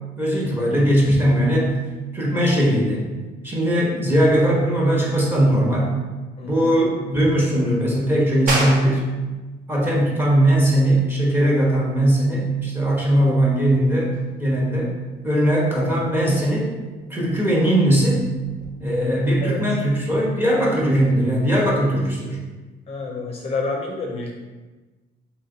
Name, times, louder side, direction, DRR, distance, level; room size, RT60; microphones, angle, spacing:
voice 1, 0.2-1.7 2.1-3.0 3.4-5.9 6.5-9.0 9.7-14.1 14.4-14.9 15.2-16.7 17.1-18.2 18.8-22.4, right 1 dB, 10° right, -4 dB, 1.0 m, -19 dB
voice 2, 6.4-6.7 19.4-19.6 22.9-24.3, left 3 dB, 35° left, 0 dB, 0.5 m, -29 dB
sound 1, 8.5-18.7, right 2 dB, 50° right, 0.8 m, -34 dB
3.1 x 3.0 x 3.8 m, 1.2 s
cardioid pair, 110°, 17 cm